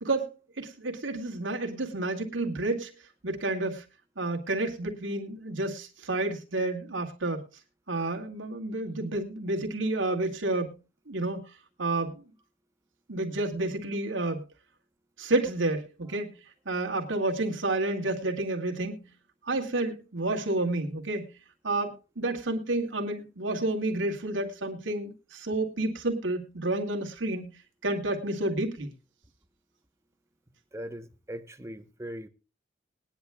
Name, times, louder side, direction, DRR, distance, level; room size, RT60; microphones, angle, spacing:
voice 1, 0.0-2.9 3.2-3.8 4.2-7.5 7.9-10.8 11.1-11.5 11.8-12.2 13.1-14.4 15.2-16.3 16.7-19.1 19.5-21.3 21.6-27.5 27.8-28.9, right 2 dB, 85° right, 2.2 m, -30 dB
voice 2, 30.7-32.3, equal, 15° right, 1.0 m, -40 dB
20.5 x 10.0 x 2.3 m
head